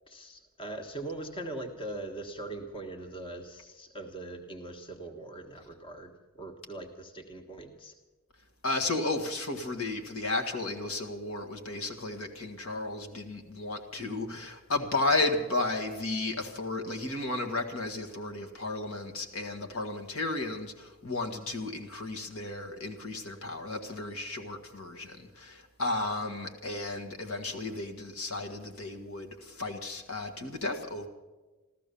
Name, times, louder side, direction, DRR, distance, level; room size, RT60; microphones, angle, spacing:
voice 1, 0.1-7.9, right 2 dB, 25° left, 4 dB, 1.4 m, -41 dB
voice 2, 8.6-31.1, left 2 dB, 65° left, 4 dB, 1.6 m, -33 dB
14.0 x 14.0 x 6.9 m, 1.2 s
head